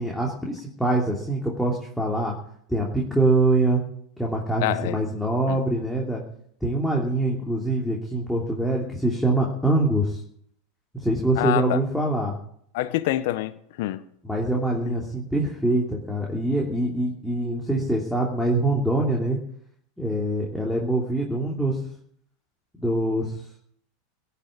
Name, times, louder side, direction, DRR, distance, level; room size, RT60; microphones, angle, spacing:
voice 1, 0.0-2.3 2.7-3.8 4.2-6.2 6.6-10.2 10.9-12.3 14.2-19.4 20.0-21.8 22.8-23.3, right 1 dB, ahead, 3.0 m, -24 dB
voice 2, 4.6-5.0 5.5-5.6 11.4-11.8 12.7-14.0 14.8-14.9, left 15 dB, 60° left, 0.9 m, -26 dB
18.0 x 7.1 x 8.8 m
hypercardioid pair, 95°, 0 cm